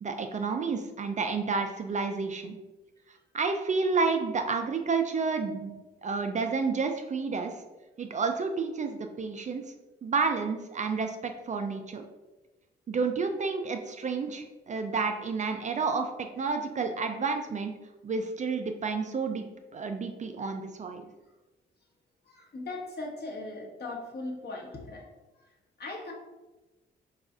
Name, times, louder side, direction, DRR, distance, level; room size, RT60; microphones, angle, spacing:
voice 1, 0.0-2.6 3.3-7.5 8.0-9.6 10.0-12.0 12.9-17.7 18.0-19.4 19.7-21.0, right 4 dB, 35° right, 5 dB, 0.4 m, -30 dB
voice 2, 22.2-25.1 25.3-26.1, left 2 dB, 50° left, -1 dB, 1.0 m, -39 dB
4.1 x 2.4 x 2.4 m, 1.1 s
supercardioid pair, 50°, 21 cm